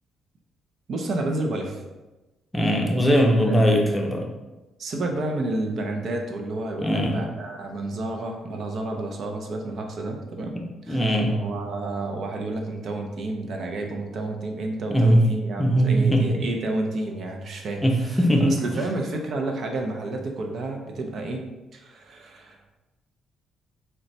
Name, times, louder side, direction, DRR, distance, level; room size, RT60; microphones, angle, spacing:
voice 1, 0.9-1.8 3.4-3.6 4.8-10.6 10.9-21.4 21.7-22.7, right 2 dB, 60° right, 2 dB, 0.6 m, -30 dB
voice 2, 2.5-4.3 6.8-7.2 10.5-11.3 14.9-15.3 15.6-16.3 17.8-18.5, equal, 10° left, 1 dB, 0.6 m, -20 dB
3.8 x 2.2 x 4.1 m, 1.1 s
cardioid pair, 90°, 0 cm